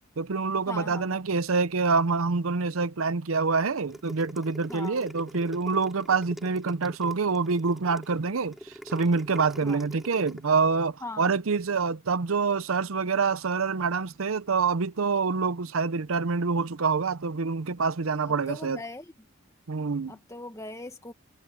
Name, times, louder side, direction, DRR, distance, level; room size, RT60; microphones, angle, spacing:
voice 1, 0.2-18.8 19.7-20.2, right 4 dB, 80° right, 0.7 m, -26 dB
voice 2, 0.7-1.2 4.7-5.0 9.6-9.8 11.0-11.3 18.2-19.0 20.1-21.1, left 2 dB, 15° left, 1.5 m, -40 dB
sound 1, 3.8-10.4, equal, ahead, 3.3 m, -44 dB
head